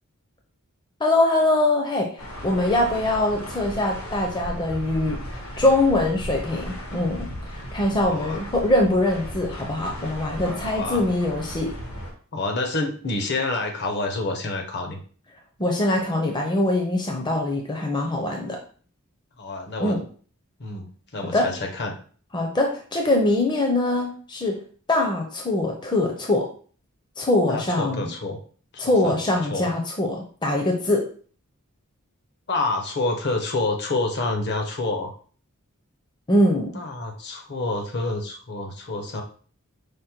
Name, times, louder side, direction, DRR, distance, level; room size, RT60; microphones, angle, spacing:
voice 1, 1.0-2.1 2.4-11.7 15.6-18.6 19.8-20.0 21.3-21.5 22.3-24.6 24.9-26.5 27.2-28.1 28.8-31.0 36.3-36.7, left 1 dB, 20° left, 1 dB, 0.6 m, -23 dB
sound 1, 2.2-12.1, equal, 75° left, 1.2 m, -36 dB
voice 2, 8.1-8.4 10.6-11.1 12.3-15.0 19.4-20.0 20.6-20.9 21.1-21.9 27.5-28.4 28.7-29.7 32.5-35.1 36.7-39.2, left 2 dB, 50° left, 3 dB, 0.8 m, -28 dB
5.0 x 2.1 x 4.4 m, 0.43 s
head